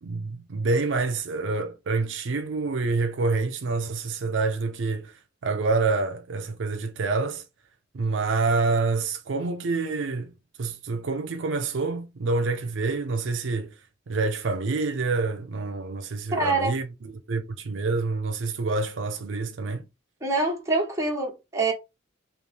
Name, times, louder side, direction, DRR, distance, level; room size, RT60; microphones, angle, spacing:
voice 1, 0.0-7.4 7.9-10.3 10.6-13.7 14.1-19.8, right 3 dB, 65° right, 0.5 m, -27 dB
voice 2, 16.3-16.7 20.2-21.7, right 3 dB, 15° right, 1.0 m, -25 dB
3.1 x 2.8 x 3.2 m
head